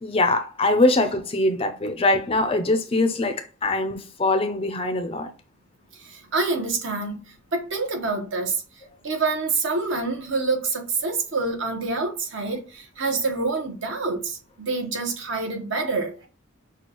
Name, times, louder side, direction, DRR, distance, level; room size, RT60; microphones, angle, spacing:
voice 1, 0.0-5.3, left 2 dB, 25° left, 0.4 m, -22 dB
voice 2, 6.0-7.2 7.5-8.6 9.0-16.3, right 3 dB, 55° right, 1.1 m, -27 dB
6.1 x 2.3 x 2.9 m
head